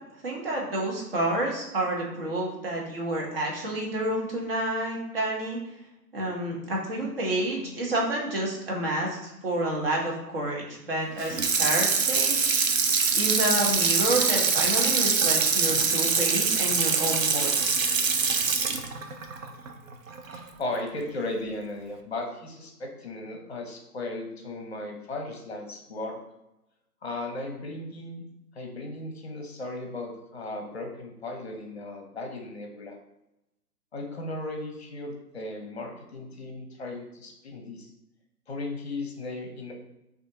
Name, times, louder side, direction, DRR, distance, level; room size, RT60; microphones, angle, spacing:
voice 1, 0.2-5.6 6.1-12.6 13.1-17.7, right 1 dB, 35° right, -2 dB, 1.1 m, -29 dB
Water tap faucet / Sink (filling or washing), 11.2-20.4 20.8-20.9, right 5 dB, 55° right, 0.6 m, -24 dB
voice 2, 20.3-26.2 27.0-28.2 28.5-33.0 33.9-37.9 38.5-39.7, left 2 dB, 40° left, 2 dB, 0.8 m, -36 dB
6.3 x 2.6 x 2.7 m, 0.90 s
figure-of-eight pair, 135°, 48 cm